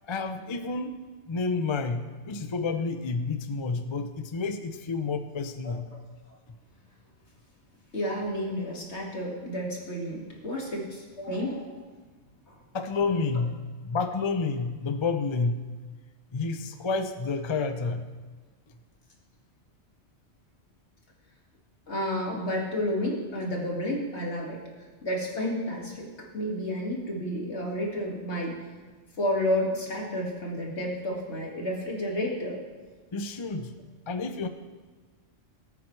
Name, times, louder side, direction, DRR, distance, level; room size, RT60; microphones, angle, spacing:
voice 1, 0.1-0.9 1.3-5.9 12.7-15.6 16.3-18.1 33.1-33.8 34.1-34.5, left 4 dB, 35° left, 8 dB, 0.5 m, -30 dB
voice 2, 5.6-6.0 7.9-11.8 12.5-12.6 21.9-24.6 25.0-28.6 29.2-32.6, equal, 70° left, -2 dB, 2.4 m, -31 dB
18.5 x 8.8 x 3.3 m, 1.4 s
omnidirectional pair, 1.2 m